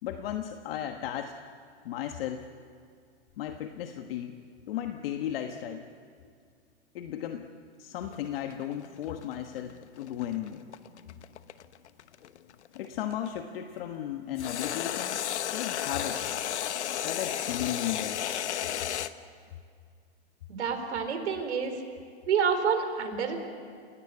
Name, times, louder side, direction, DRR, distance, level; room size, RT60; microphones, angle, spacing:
voice 1, 0.0-1.3 1.8-2.5 3.4-4.4 4.7-5.8 6.9-7.5 7.8-10.6 12.7-15.2 15.5-16.2 17.0-18.2, left 11 dB, 60° left, 5 dB, 1.4 m, -35 dB
sound 1, 8.1-13.3 14.4-19.1, left 10 dB, 80° left, 1.2 m, -33 dB
voice 2, 20.5-21.8 22.3-23.4, right 6 dB, 80° right, 6 dB, 4.2 m, -28 dB
29.5 x 17.5 x 8.5 m, 2.2 s
hypercardioid pair, 140°, 33 cm